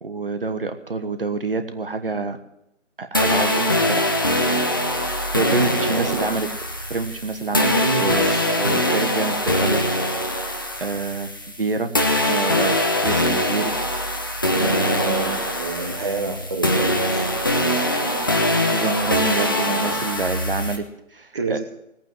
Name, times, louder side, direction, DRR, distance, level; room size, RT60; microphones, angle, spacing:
voice 1, 0.0-2.4 3.0-4.1 5.1-6.5 6.9-7.7 8.0-8.3 8.9-9.8 10.8-11.3 11.6-11.9 12.3-13.7 14.6-15.4 18.7-20.8 21.1-21.6, right 4 dB, 45° right, 9 dB, 1.3 m, -27 dB
sound 1, 3.1-11.7 11.9-20.8, left 1 dB, 15° left, 0.8 m, -22 dB
voice 2, 5.8-6.4 7.6-8.9 14.9-18.5 19.6-20.0 21.3-21.6, right 3 dB, 25° right, 0 dB, 1.1 m, -29 dB
18.0 x 9.0 x 7.7 m, 0.83 s
figure-of-eight pair, 155°, 38 cm